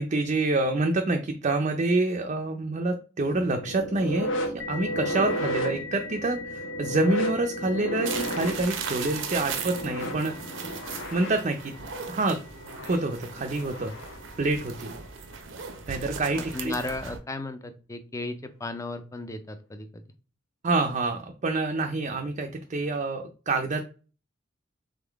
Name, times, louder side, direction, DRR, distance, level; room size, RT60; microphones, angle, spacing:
voice 1, 0.0-10.4 11.1-11.7 12.1-12.4 12.8-13.9 14.4-15.0 15.9-16.7 20.6-23.8, right 2 dB, 40° right, 4 dB, 0.5 m, -27 dB
sound 1, 3.3-14.3 15.6-15.8 16.7-16.8, equal, 90° left, 1.0 m, -34 dB
sound 2, 4.6-13.8, left 7 dB, 60° left, 0.6 m, -44 dB
sound 3, 8.0-17.2, right 6 dB, 80° right, 0.7 m, -38 dB
voice 2, 16.3-20.0, left 2 dB, 15° left, 8 dB, 0.5 m, -35 dB
3.8 x 3.7 x 3.4 m, 0.36 s
head